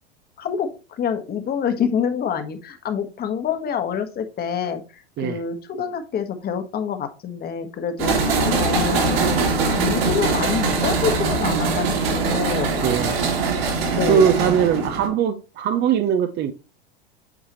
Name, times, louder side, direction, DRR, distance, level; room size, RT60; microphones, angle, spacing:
voice 1, 0.4-9.4 9.7-12.7 13.9-14.3 14.7-14.8, left 7 dB, 30° left, 1.4 m, -27 dB
sound 1, 8.0-15.1, right 4 dB, 65° right, 3.2 m, -22 dB
voice 2, 12.8-13.2 14.1-16.5, right 8 dB, 35° right, 0.8 m, -20 dB
8.7 x 4.7 x 3.1 m
hypercardioid pair, 105°, 31 cm